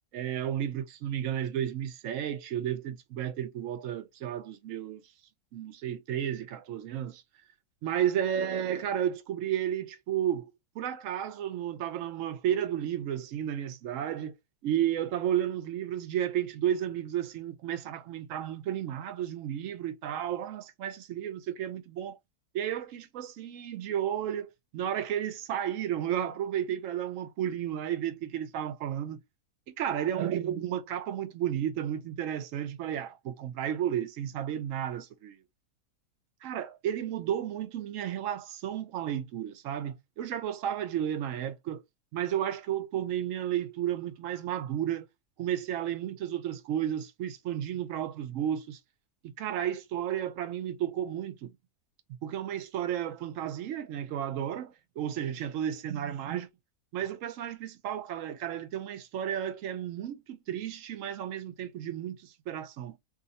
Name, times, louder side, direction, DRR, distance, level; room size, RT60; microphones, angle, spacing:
voice 1, 0.1-5.0 5.5-7.2 7.8-10.5 10.8-14.3 14.6-22.2 22.5-29.2 29.8-35.4 36.4-41.8 42.1-45.1 45.4-48.8 49.2-51.5 52.2-56.5 56.9-63.0, right 10 dB, 65° right, 0.9 m, -32 dB
2.7 x 2.6 x 4.0 m
omnidirectional pair, 1.7 m